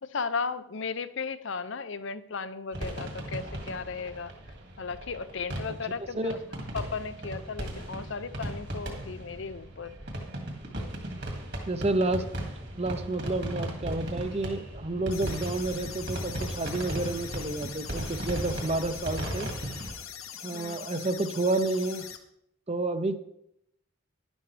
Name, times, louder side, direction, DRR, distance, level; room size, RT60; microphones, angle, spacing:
voice 1, 0.0-4.3 4.8-6.4 6.7-9.9 20.5-20.9, left 5 dB, 65° left, 13 dB, 0.6 m, -35 dB
sound 1, 2.7-19.9, right 1 dB, 55° right, 2.2 m, -37 dB
voice 2, 11.7-12.3 12.7-19.5 20.4-22.1 22.7-23.2, right 2 dB, 30° right, 10 dB, 0.7 m, -30 dB
sound 2, 15.1-22.2, left 8 dB, 90° left, 1.1 m, -42 dB
11.5 x 11.0 x 3.4 m, 0.78 s
head